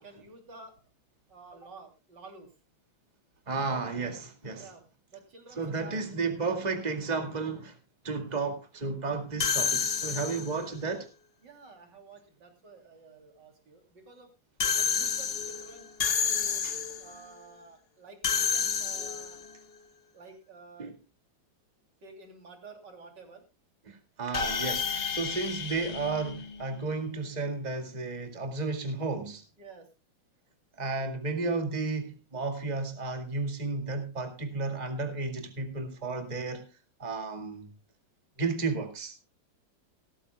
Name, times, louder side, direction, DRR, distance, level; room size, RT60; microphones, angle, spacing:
voice 1, 0.0-0.7 1.3-2.5 4.6-4.8 5.1-6.0 11.4-14.3 14.6-15.9 16.2-16.6 17.0-19.4 20.1-20.9 22.0-23.4 29.6-29.9 31.0-31.1, right 3 dB, 60° right, 3.7 m, -50 dB
voice 2, 3.5-4.7 5.6-7.8 8.0-11.1 16.6-16.7 20.8-21.0 23.9-29.4 30.8-36.6 37.0-37.7 38.4-39.1, right 3 dB, 20° right, 2.1 m, -33 dB
sound 1, 9.4-10.7 14.6-17.1 18.2-19.5 24.3-26.9, left 6 dB, 50° left, 0.7 m, -30 dB
17.5 x 14.0 x 2.2 m
omnidirectional pair, 2.1 m